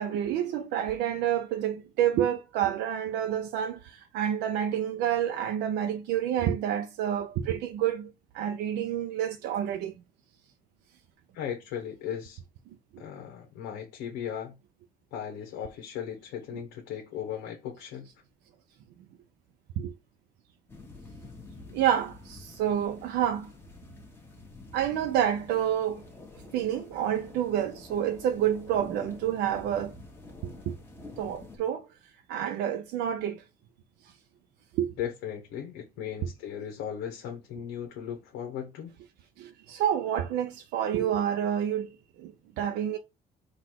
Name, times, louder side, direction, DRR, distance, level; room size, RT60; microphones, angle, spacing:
voice 1, 0.0-9.9 19.8-19.9 21.7-23.5 24.7-26.0 26.5-29.9 30.4-30.7 31.2-31.9 32.3-33.4 34.7-34.9 39.4-43.0, right 10 dB, 85° right, 0.5 m, -29 dB
voice 2, 11.3-12.4 13.0-14.6 15.1-18.1 35.0-38.9, left 9 dB, 90° left, 0.9 m, -37 dB
sound 1, 20.7-31.6, left 2 dB, 15° left, 1.2 m, -48 dB
3.9 x 2.4 x 4.5 m
cardioid pair, 110°, 17 cm